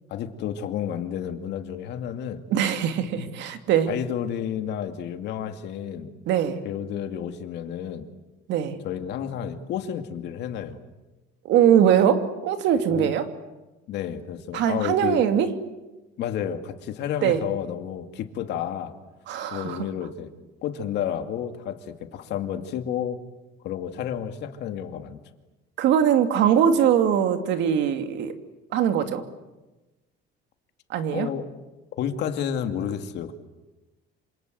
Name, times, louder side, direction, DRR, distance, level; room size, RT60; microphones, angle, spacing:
voice 1, 0.1-2.4 3.9-6.1 6.6-8.1 8.8-10.8 12.9-13.1 13.9-15.2 16.2-18.9 19.5-20.3 20.6-23.2 23.6-25.2 31.1-31.5 32.0-33.3, left 9 dB, 60° left, 7 dB, 2.4 m, -31 dB
voice 2, 2.5-3.9 6.3-6.6 8.5-8.8 11.4-13.3 14.5-15.5 17.2-17.4 19.3-19.8 25.8-28.3 28.7-29.2 30.9-31.3, right 9 dB, 65° right, 8 dB, 2.6 m, -21 dB
27.0 x 27.0 x 8.0 m, 1.1 s
cardioid pair, 155°, 20 cm